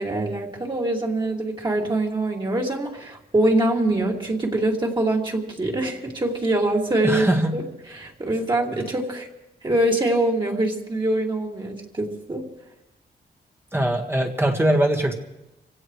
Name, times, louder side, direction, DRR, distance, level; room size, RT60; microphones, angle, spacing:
voice 1, 0.0-9.3 9.6-12.4, right 1 dB, 30° right, -2 dB, 2.6 m, -24 dB
voice 2, 7.0-7.5 13.7-15.1, right 1 dB, 15° right, 0 dB, 1.7 m, -21 dB
25.5 x 16.5 x 3.2 m, 0.92 s
cardioid pair, 90°, 17 cm